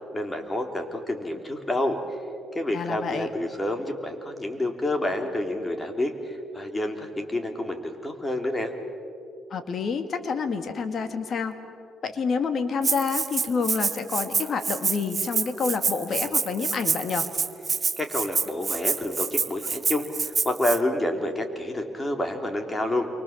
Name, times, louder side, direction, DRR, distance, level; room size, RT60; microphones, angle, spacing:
voice 1, 0.1-2.0 2.6-8.7 18.0-23.1, left 1 dB, 20° left, 5 dB, 3.6 m, -28 dB
voice 2, 2.7-3.3 9.5-11.5 12.0-17.3, left 5 dB, 55° left, 8 dB, 2.4 m, -28 dB
Rattle (instrument), 12.8-20.8, right 5 dB, 35° right, 1.0 m, -27 dB
28.5 x 24.0 x 7.5 m, 2.5 s
cardioid pair, 90°, 0 cm